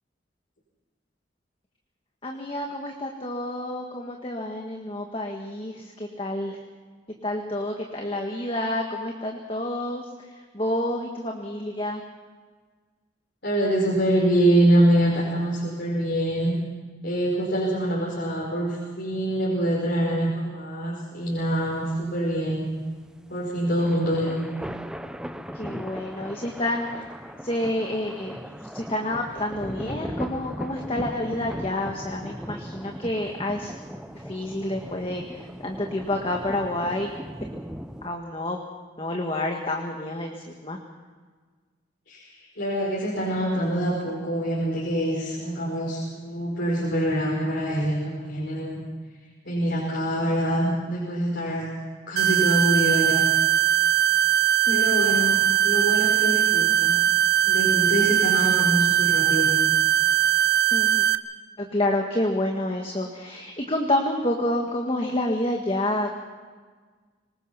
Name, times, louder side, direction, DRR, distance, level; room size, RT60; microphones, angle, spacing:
voice 1, 2.2-6.6 7.2-10.0 10.5-12.0 25.5-27.0 27.4-28.4 28.7-33.7 34.3-37.1 38.0-38.6 39.0-40.4 40.6-40.8 54.7-55.1 60.7-61.0 61.6-66.1, left 1 dB, 30° left, 1 dB, 1.7 m, -28 dB
voice 2, 13.4-16.5 17.0-22.6 23.3-24.4 42.1-48.8 49.4-51.7 52.1-53.2 54.7-57.0 57.4-59.5, right 1 dB, 55° left, -5 dB, 4.9 m, -25 dB
sound 1, 21.3-38.1, equal, 5° right, 0.7 m, -38 dB
sound 2, 52.2-61.2, right 11 dB, 55° right, 0.8 m, -20 dB
24.5 x 20.5 x 5.7 m, 1.4 s
head